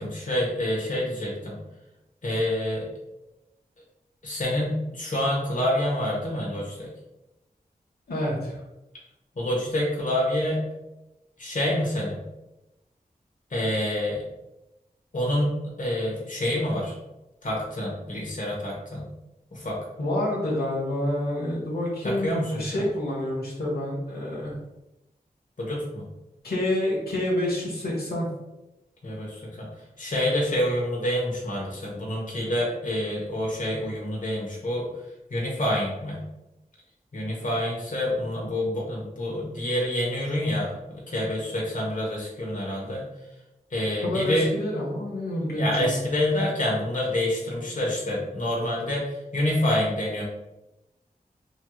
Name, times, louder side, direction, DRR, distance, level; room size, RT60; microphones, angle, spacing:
voice 1, 0.0-1.6 2.2-2.9 4.2-6.9 9.4-10.6 11.4-12.2 13.5-14.2 15.1-16.9 17.4-19.1 19.5-19.8 22.0-22.7 25.6-26.0 29.0-29.7 30.0-34.9 35.3-36.2 37.1-43.0 43.7-44.5 45.5-50.2, left 1 dB, 55° left, -4 dB, 1.3 m, -27 dB
voice 2, 8.1-8.6 20.0-24.5 26.4-28.3 44.0-45.9, left 1 dB, 85° left, -5 dB, 1.4 m, -28 dB
5.4 x 3.1 x 2.4 m, 0.95 s
wide cardioid pair, 70°, 16 cm